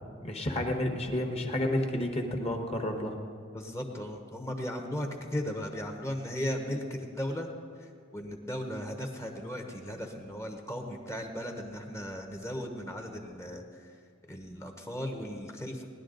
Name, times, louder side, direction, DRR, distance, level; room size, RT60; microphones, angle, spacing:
voice 1, 0.2-3.2, left 1 dB, 30° left, 3 dB, 1.2 m, -30 dB
voice 2, 3.5-7.5 7.8-13.9 14.3-15.8, equal, 15° left, 3 dB, 1.0 m, -36 dB
18.0 x 11.0 x 3.9 m, 2.3 s
head